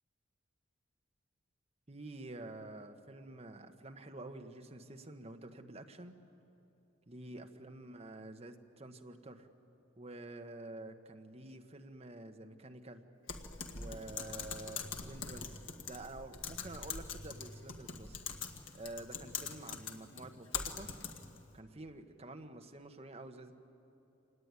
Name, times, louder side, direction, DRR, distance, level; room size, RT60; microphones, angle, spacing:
voice 1, 1.9-6.1 7.1-9.5 10.0-13.0 13.7-18.2 18.7-20.9 21.5-23.5, right 2 dB, 30° right, 6 dB, 1.3 m, -49 dB
Typing, 13.3-21.4, left 6 dB, 70° left, 1.8 m, -43 dB
26.0 x 19.0 x 9.7 m, 2.8 s
head